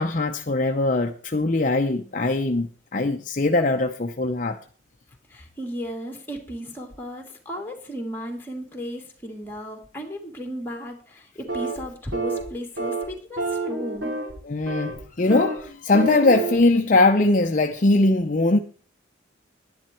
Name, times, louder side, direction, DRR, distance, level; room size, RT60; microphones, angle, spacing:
voice 1, 0.0-4.6 14.4-18.6, left 2 dB, 40° left, 0.6 m, -21 dB
voice 2, 5.3-14.1, equal, 10° left, 2.5 m, -35 dB
sound 1, 11.5-11.8 12.1-12.4 12.8-13.1 13.4-14.3 14.7-15.0 15.3-15.6 15.9-16.6, right 2 dB, 85° right, 4.2 m, -28 dB
11.5 x 10.5 x 4.5 m
head